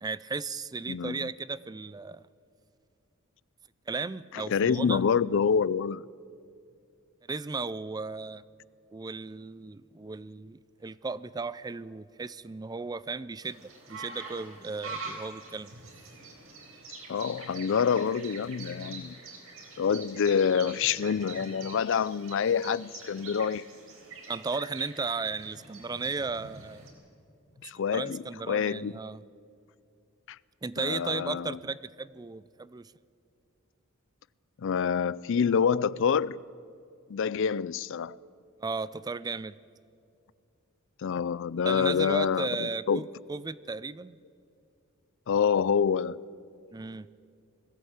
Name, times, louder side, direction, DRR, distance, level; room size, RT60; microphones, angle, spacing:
voice 1, 0.0-2.2 3.9-5.0 7.3-8.4 8.9-13.6 13.9-15.7 24.3-26.9 27.9-29.2 30.6-32.9 38.6-39.6 41.7-44.2 46.7-47.1, right 4 dB, 20° right, 0.4 m, -35 dB
voice 2, 0.9-1.3 4.3-6.0 17.1-19.2 19.8-23.7 27.6-28.9 30.3-30.4 30.8-31.6 34.6-36.4 37.1-38.2 41.0-43.0 45.3-46.2, left 6 dB, 65° left, 0.4 m, -27 dB
sound 1, 13.4-26.9, right 3 dB, 75° right, 4.4 m, -45 dB
21.0 x 15.5 x 8.9 m
head